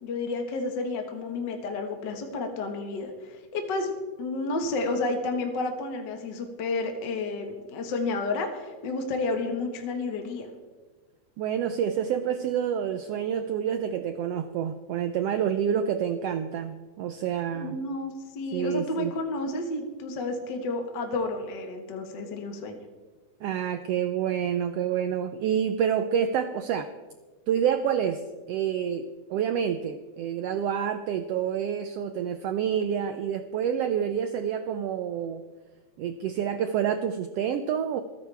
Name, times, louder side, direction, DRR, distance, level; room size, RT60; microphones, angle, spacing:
voice 1, 0.0-3.9 4.2-10.5 17.5-22.8, left 3 dB, 45° left, 4 dB, 1.6 m, -31 dB
voice 2, 11.4-17.8 18.5-19.1 23.4-26.9 27.5-29.0 29.3-35.4 36.0-38.0, right 8 dB, 85° right, 9 dB, 1.4 m, -28 dB
27.0 x 9.7 x 3.4 m, 1.4 s
omnidirectional pair, 3.5 m